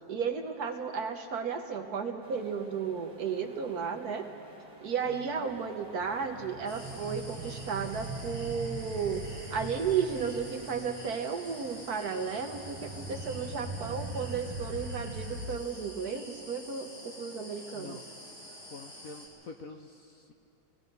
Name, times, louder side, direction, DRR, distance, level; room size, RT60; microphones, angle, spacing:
voice 1, 0.1-4.3 4.8-18.0, right 6 dB, 55° right, 5 dB, 1.2 m, -34 dB
sound 1, 2.2-13.6, right 1 dB, 20° right, 2.7 m, -54 dB
sound 2, 5.5-15.6, right 2 dB, 85° right, 2.0 m, -42 dB
sound 3, 6.7-19.3, left 1 dB, 80° left, 5.3 m, -48 dB
voice 2, 17.7-18.0 18.7-20.3, left 4 dB, 60° left, 4 dB, 1.0 m, -47 dB
27.0 x 18.0 x 5.4 m, 2.7 s
omnidirectional pair, 2.2 m